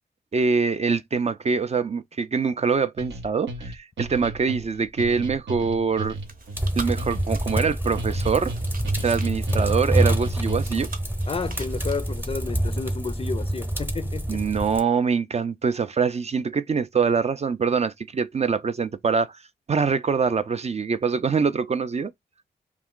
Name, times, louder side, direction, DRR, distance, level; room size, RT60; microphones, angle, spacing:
voice 1, 0.3-6.2 6.8-8.5 9.0-10.9 14.3-19.4 19.7-22.1, right 5 dB, 35° right, 0.4 m, -24 dB
sound 1, 3.0-10.9, right 2 dB, 85° right, 0.7 m, -35 dB
Chewing mastication, 5.9-12.5, right 3 dB, 55° right, 0.8 m, -43 dB
sound 2, 6.6-14.8, right 1 dB, 10° right, 0.8 m, -26 dB
voice 2, 11.3-14.5, left 4 dB, 35° left, 0.4 m, -31 dB
2.4 x 2.3 x 3.6 m
cardioid pair, 45°, 18 cm